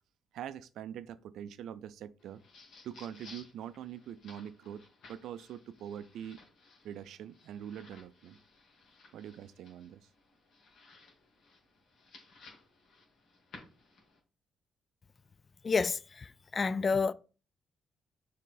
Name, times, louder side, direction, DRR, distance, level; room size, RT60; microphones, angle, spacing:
voice 1, 0.3-2.4 2.8-4.8 5.1-6.4 6.8-8.4 9.1-10.0, right 10 dB, 80° right, 0.4 m, -44 dB
sound 1, 2.2-14.2, left 3 dB, 70° left, 2.0 m, -58 dB
voice 2, 15.6-17.1, left 4 dB, 35° left, 0.3 m, -30 dB
6.6 x 3.6 x 3.9 m
cardioid pair, 90°, 0 cm